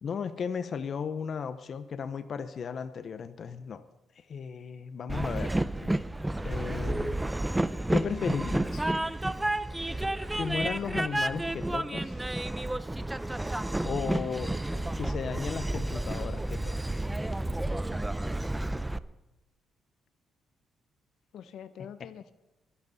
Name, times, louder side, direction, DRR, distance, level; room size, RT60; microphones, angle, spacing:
voice 1, 0.0-3.8 4.2-5.6 6.4-7.2 7.9-8.9 10.4-12.4 13.8-14.6 15.0-17.1 22.0-22.1, left 6 dB, 55° left, 11 dB, 0.8 m, -35 dB
Train, 5.1-19.0, right 1 dB, 10° right, 0.6 m, -31 dB
voice 2, 21.3-22.3, left 9 dB, 75° left, 12 dB, 1.0 m, -46 dB
22.5 x 11.5 x 4.1 m, 1.0 s
cardioid pair, 90°, 0 cm